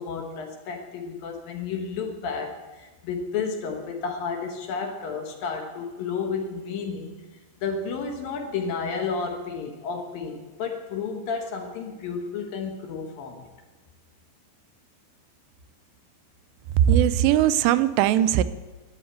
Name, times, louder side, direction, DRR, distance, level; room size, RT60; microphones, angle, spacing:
voice 1, 0.0-13.5, left 5 dB, 65° left, 3 dB, 2.7 m, -32 dB
voice 2, 16.8-18.4, right 11 dB, 85° right, 12 dB, 2.8 m, -19 dB
13.5 x 8.6 x 7.9 m, 1.2 s
omnidirectional pair, 4.9 m